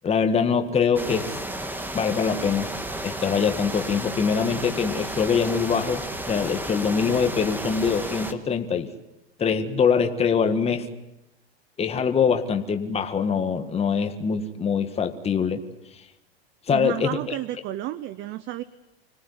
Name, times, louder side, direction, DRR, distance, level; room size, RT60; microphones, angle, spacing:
voice 1, 0.0-1.4 1.9-2.7 3.0-8.9 9.4-10.9 11.8-15.6 16.7-17.2, left 6 dB, 20° left, 7 dB, 1.8 m, -23 dB
sound 1, 0.9-8.3, right 1 dB, 5° right, 1.7 m, -32 dB
voice 2, 16.7-18.6, right 14 dB, 35° right, 16 dB, 0.9 m, -31 dB
25.5 x 18.0 x 9.8 m, 0.92 s
hypercardioid pair, 115°, 31 cm